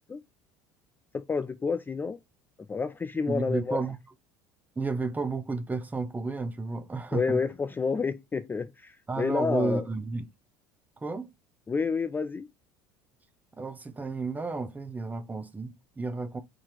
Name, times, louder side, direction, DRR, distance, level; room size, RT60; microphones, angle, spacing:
voice 1, 1.1-2.2 2.7-3.8 7.1-9.8 11.7-12.5, left 5 dB, 20° left, 0.4 m, -29 dB
voice 2, 3.3-4.0 4.8-7.4 9.1-10.3 11.0-11.3 13.6-16.4, right 3 dB, 15° right, 0.7 m, -32 dB
3.8 x 2.8 x 4.8 m
hypercardioid pair, 70°, 10 cm